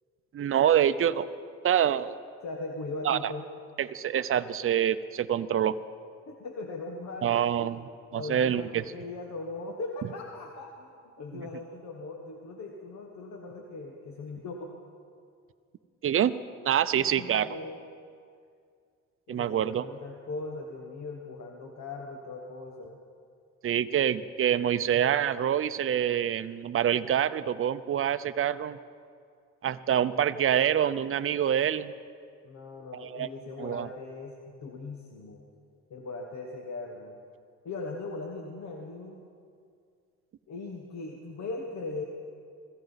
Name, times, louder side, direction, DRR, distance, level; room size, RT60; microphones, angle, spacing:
voice 1, 0.3-1.3 1.6-2.1 3.0-3.3 3.8-5.8 7.2-8.9 11.3-11.5 16.0-16.3 16.6-17.5 19.3-19.8 23.6-28.8 29.6-31.9 32.9-33.3 33.6-33.9, right 9 dB, 45° right, 13 dB, 0.6 m, -26 dB
voice 2, 2.4-3.5 6.2-7.7 8.1-14.7 16.9-17.8 19.3-23.0 32.4-35.4 35.9-37.2 37.6-39.2 40.5-42.0, left 3 dB, 65° left, 1 dB, 1.4 m, -39 dB
21.0 x 15.0 x 4.1 m, 2.3 s
cardioid pair, 90°, 30 cm